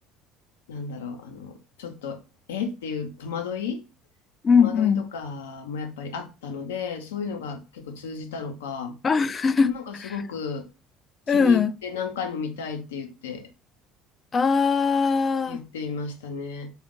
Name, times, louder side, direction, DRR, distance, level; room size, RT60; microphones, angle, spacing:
voice 1, 0.7-2.2 2.5-3.8 4.5-9.0 9.6-10.7 11.3-13.5 15.5-16.7, left 6 dB, 90° left, 0.6 m, -33 dB
voice 2, 4.4-5.0 9.0-9.7 11.3-11.7 14.3-15.6, left 5 dB, 35° left, 0.3 m, -20 dB
3.7 x 2.3 x 3.6 m
hypercardioid pair, 75°, 0 cm